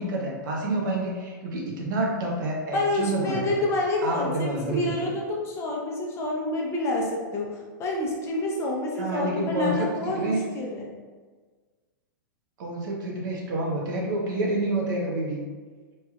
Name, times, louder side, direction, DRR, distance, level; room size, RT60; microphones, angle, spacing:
voice 1, 0.0-3.4 4.0-5.1 9.0-10.4 12.6-15.4, right 1 dB, 65° right, -2 dB, 0.8 m, -28 dB
voice 2, 2.7-10.9, left 1 dB, 25° left, -1 dB, 0.6 m, -28 dB
3.1 x 2.8 x 2.3 m, 1.5 s
hypercardioid pair, 130°, 11 cm